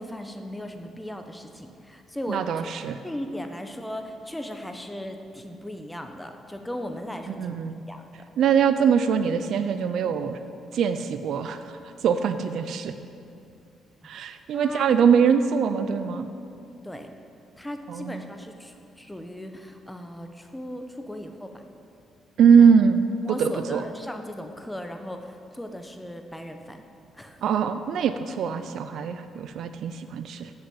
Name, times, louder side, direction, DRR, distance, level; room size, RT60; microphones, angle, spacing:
voice 1, 0.0-2.7 3.0-7.6 7.9-8.1 14.0-14.1 14.5-14.9 16.8-17.1 17.6-21.6 22.6-22.7 23.2-26.8 27.1-27.4, left 1 dB, 5° left, 6 dB, 0.9 m, -37 dB
voice 2, 2.3-3.0 7.3-7.8 8.4-10.4 10.7-12.9 14.0-16.3 17.9-18.2 22.4-23.0 23.3-23.8 27.4-30.5, right 7 dB, 70° right, 10 dB, 0.4 m, -22 dB
8.0 x 6.4 x 7.9 m, 2.6 s
cardioid pair, 90°, 0 cm